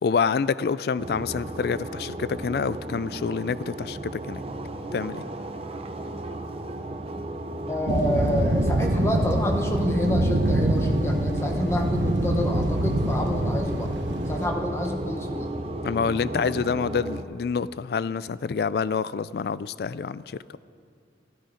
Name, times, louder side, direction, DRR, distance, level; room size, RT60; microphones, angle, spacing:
voice 1, 0.0-4.4 4.9-5.2 15.8-20.4, left 5 dB, 60° left, 18 dB, 0.3 m, -27 dB
sound 1, 1.0-17.2, right 1 dB, 30° right, 0.6 m, -34 dB
voice 2, 7.7-13.9 14.3-15.5, left 1 dB, 15° left, 2 dB, 0.9 m, -28 dB
sound 2, 7.9-14.5, right 1 dB, 85° right, 1.0 m, -25 dB
13.5 x 13.0 x 5.0 m, 2.3 s
head